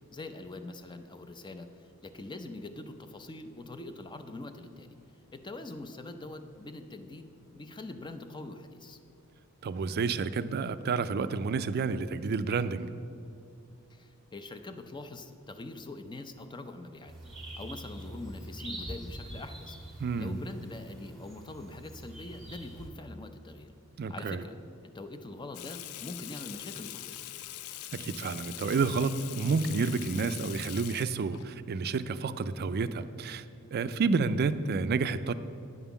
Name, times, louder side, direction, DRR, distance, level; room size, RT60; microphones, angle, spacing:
voice 1, 0.1-1.7 2.0-5.0 5.3-9.0 13.9-19.8 20.2-23.7 24.1-24.6 24.8-27.3, left 2 dB, 20° left, 9 dB, 0.5 m, -43 dB
voice 2, 9.6-12.9 20.0-20.4 24.0-24.4 27.9-33.4 33.7-35.3, right 4 dB, 45° right, 13 dB, 0.4 m, -30 dB
sound 1, 17.1-22.9, right 1 dB, ahead, 1.7 m, -44 dB
Water tap faucet / Sink (filling or washing), 25.5-31.4, left 13 dB, 75° left, 0.4 m, -43 dB
9.6 x 5.6 x 7.0 m, 2.6 s
head